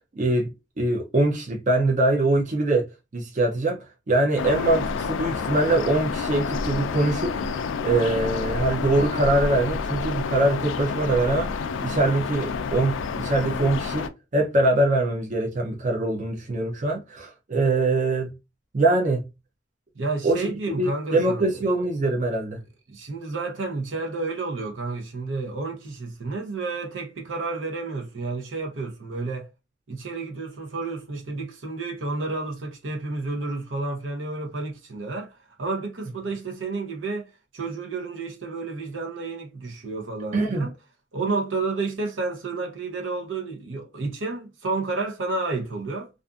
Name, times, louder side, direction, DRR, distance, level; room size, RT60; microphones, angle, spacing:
voice 1, 0.1-0.5 0.8-2.9 3.1-3.8 4.1-7.4 7.8-11.5 11.8-18.3 18.7-19.2 20.2-20.5 20.8-22.6 40.3-40.7, right 2 dB, 40° right, 0.5 m, -23 dB
sound 1, 4.4-14.1, left 5 dB, 75° left, 0.3 m, -29 dB
voice 2, 19.9-21.6 22.9-29.5 29.9-40.7 41.1-46.1, right 3 dB, 75° right, 0.8 m, -31 dB
2.5 x 2.5 x 2.3 m
head